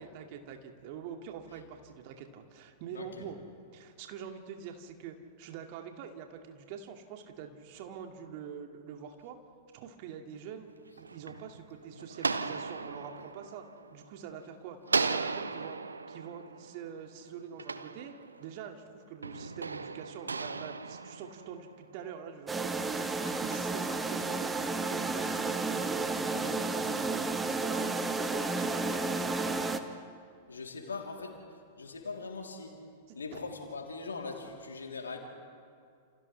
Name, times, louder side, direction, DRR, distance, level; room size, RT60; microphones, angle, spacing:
voice 1, 0.0-3.4 3.7-9.4 9.7-10.7 11.0-13.6 13.9-14.8 15.0-15.8 16.1-18.1 18.4-23.1 23.4-26.1 26.4-28.9 33.1-33.2, right 7 dB, 45° right, 4 dB, 2.2 m, -45 dB
voice 2, 2.9-3.3 30.5-31.4 31.8-32.8 33.1-35.2, left 4 dB, 75° left, 1 dB, 3.3 m, -41 dB
sound 1, 10.7-14.4 14.9-18.6 19.2-21.9, right 4 dB, 80° right, 0.8 m, -36 dB
sound 2, 22.5-29.8, right 3 dB, 10° right, 1.3 m, -32 dB
30.0 x 28.5 x 3.4 m, 2.3 s
figure-of-eight pair, 100°, 0 cm